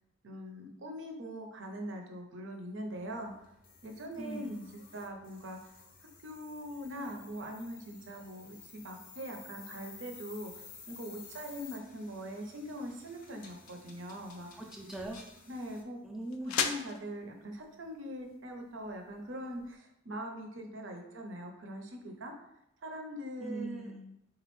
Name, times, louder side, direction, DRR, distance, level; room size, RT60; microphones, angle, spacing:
voice 1, 0.2-3.3 3.8-5.7 6.0-14.6 15.5-16.0 16.6-22.3 22.8-23.9, equal, 65° right, 3 dB, 0.6 m, -42 dB
sound 1, 2.9-15.8, left 5 dB, 45° left, 0.6 m, -54 dB
voice 2, 4.2-4.7 14.6-15.2 16.0-16.6 23.4-24.1, right 2 dB, ahead, 0 dB, 0.4 m, -41 dB
sound 2, 13.8-19.7, left 7 dB, 90° left, 0.4 m, -41 dB
4.1 x 2.4 x 3.1 m, 0.85 s
head